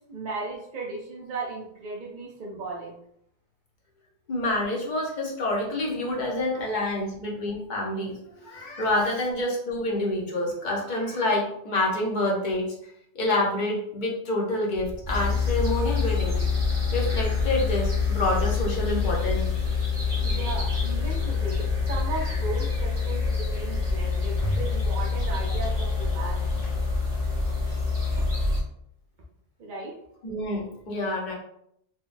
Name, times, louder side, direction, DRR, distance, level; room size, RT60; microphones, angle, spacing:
voice 1, 0.1-2.9 20.2-26.4 29.6-30.0, right 3 dB, 55° right, -4 dB, 0.7 m, -36 dB
voice 2, 4.3-12.7 13.1-16.4 16.9-19.5 24.4-24.6 26.6-26.7 30.2-31.3, left 1 dB, 50° left, -2 dB, 0.9 m, -27 dB
sound 1, 14.7-22.6, right 1 dB, 5° right, 0.3 m, -39 dB
sound 2, 15.1-28.6, left 4 dB, 25° right, 1.1 m, -26 dB
3.7 x 2.2 x 2.5 m, 0.71 s
omnidirectional pair, 1.1 m